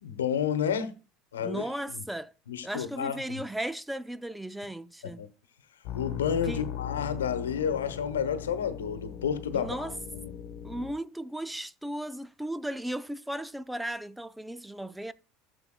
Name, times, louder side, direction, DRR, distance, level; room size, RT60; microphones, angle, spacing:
voice 1, 0.0-0.9 1.3-1.6 2.5-3.4 5.0-5.3 5.9-10.3, left 8 dB, 85° left, 1.0 m, -31 dB
voice 2, 1.4-2.3 2.6-5.2 6.4-6.7 9.5-9.9 10.6-15.1, right 1 dB, 5° right, 0.5 m, -36 dB
sound 1, 5.8-10.9, left 9 dB, 60° left, 1.3 m, -39 dB
13.0 x 7.0 x 2.3 m
hypercardioid pair, 80°, 0 cm